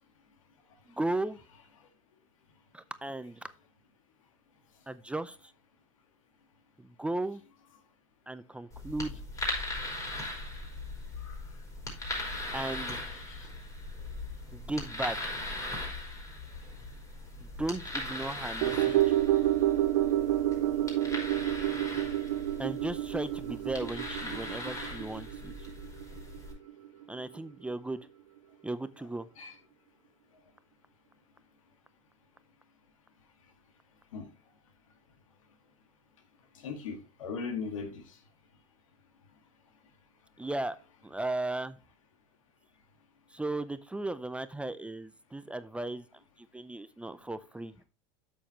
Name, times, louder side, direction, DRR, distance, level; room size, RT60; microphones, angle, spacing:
voice 1, 0.9-1.4 2.7-3.4 4.9-5.5 6.8-7.4 8.3-9.2 12.5-13.0 14.5-15.4 17.4-19.1 22.6-25.5 27.1-28.0 28.6-29.3 40.4-40.8 41.0-41.8 43.3-47.7, right 2 dB, 5° right, 13 dB, 0.5 m, -36 dB
sound 1, 8.7-26.5, left 2 dB, 20° left, 4.5 m, -39 dB
voice 2, 11.2-11.5 12.4-13.5 29.4-29.6 34.1-34.3 36.5-38.2, left 5 dB, 90° left, 6 dB, 1.9 m, -40 dB
sound 2, 18.6-27.0 27.4-27.5, right 14 dB, 70° right, 0.5 m, -29 dB
8.4 x 7.3 x 3.0 m, 0.31 s
hypercardioid pair, 105°, 16 cm